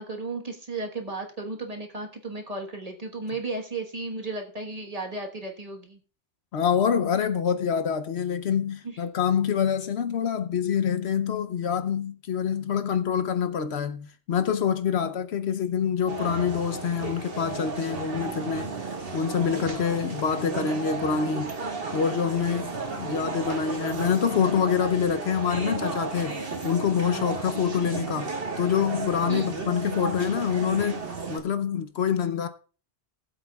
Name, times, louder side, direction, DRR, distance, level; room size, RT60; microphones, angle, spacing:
voice 1, 0.0-6.0 8.8-9.0 29.3-29.5, right 3 dB, 35° right, 1.4 m, -34 dB
voice 2, 6.5-18.7 19.1-21.5 21.9-31.0 31.3-32.5, left 7 dB, 65° left, 0.9 m, -26 dB
sound 1, 16.1-31.4, right 4 dB, 55° right, 1.8 m, -33 dB
19.5 x 7.9 x 2.3 m
omnidirectional pair, 1.2 m